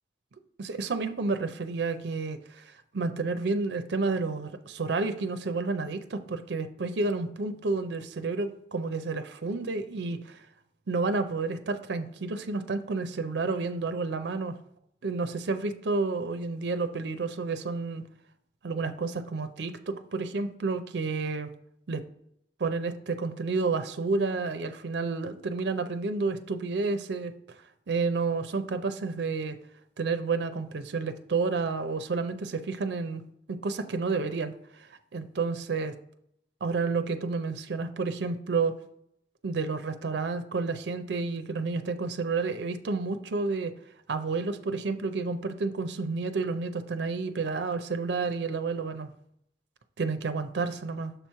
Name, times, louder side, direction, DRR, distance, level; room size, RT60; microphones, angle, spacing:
voice 1, 0.6-10.4 10.9-14.6 15.0-18.0 18.6-21.5 21.9-22.0 22.6-27.3 27.9-29.6 30.0-33.2 33.5-35.9 36.6-38.7 39.4-43.7 44.1-49.1 50.0-51.1, right 4 dB, 75° right, 9 dB, 0.5 m, -30 dB
6.7 x 3.0 x 5.6 m, 0.71 s
head